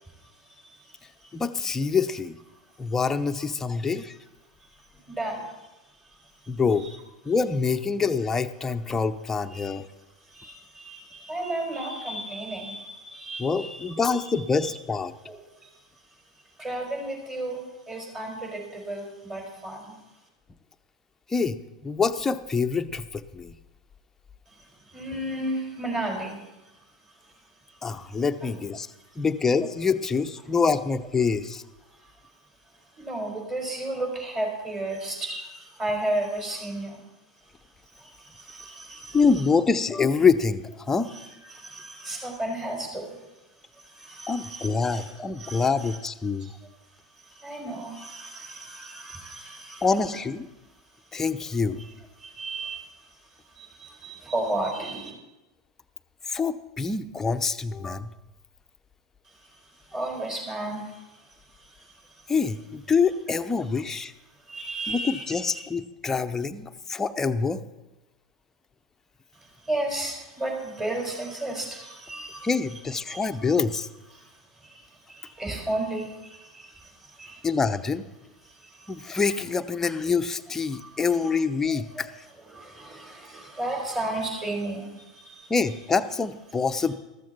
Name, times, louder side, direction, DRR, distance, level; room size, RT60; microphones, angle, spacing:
voice 1, 0.2-1.0 1.2-1.3 5.1-5.7 6.0-6.2 6.8-6.9 9.5-9.7 10.3-14.7 15.3-15.7 16.6-20.0 24.5-24.6 24.8-26.5 28.4-28.5 32.0-32.1 32.9-37.0 37.9-39.2 41.1-43.2 43.7-46.0 46.4-46.5 47.2-49.9 52.2-52.9 53.4-55.1 59.4-62.2 64.4-65.6 69.4-72.5 73.1-73.2 74.1-77.5 78.4-79.2 80.7-80.9 81.7-82.1 82.5-85.5, right 1 dB, 20° right, 0 dB, 4.9 m, -34 dB
voice 2, 1.3-2.4 2.8-4.2 6.5-6.9 7.2-9.8 13.4-15.1 21.3-21.6 21.8-23.5 27.8-28.9 29.2-31.6 39.1-41.1 44.3-46.5 49.8-50.5 51.1-51.8 56.3-58.1 62.3-64.1 64.9-67.6 72.4-73.9 77.4-78.1 78.9-82.1 85.5-86.9, left 5 dB, 15° left, 8 dB, 0.7 m, -25 dB
14.0 x 13.5 x 4.4 m, 0.99 s
figure-of-eight pair, 85°, 3 cm